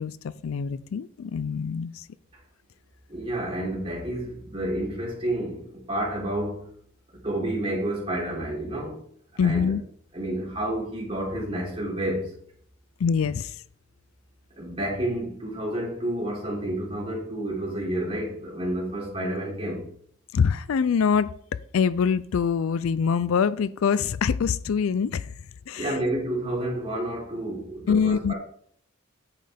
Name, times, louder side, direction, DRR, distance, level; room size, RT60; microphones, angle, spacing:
voice 1, 0.0-2.1 9.4-9.8 13.0-13.6 20.3-21.3 21.7-25.3 25.7-26.0 27.9-28.3, left 6 dB, 75° left, 0.4 m, -24 dB
voice 2, 3.1-6.7 7.1-9.0 9.4-9.7 10.1-12.4 14.6-19.9 25.7-28.3, right 1 dB, 25° right, 3.4 m, -30 dB
8.9 x 7.7 x 3.5 m
head